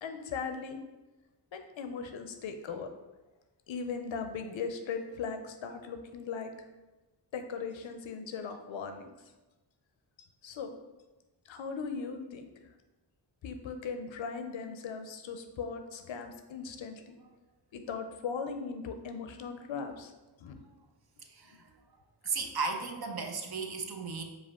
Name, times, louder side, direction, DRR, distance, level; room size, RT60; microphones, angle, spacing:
voice 1, 0.0-0.8 1.5-2.9 3.7-6.5 7.3-9.1 10.4-10.7 11.5-12.5 13.4-17.2 17.7-20.1 20.4-20.6 21.5-21.6, left 5 dB, 85° left, 6 dB, 0.6 m, -38 dB
voice 2, 22.2-24.2, right 4 dB, 55° right, 4 dB, 0.7 m, -35 dB
4.9 x 2.4 x 3.5 m, 1.1 s
cardioid pair, 55°, 45 cm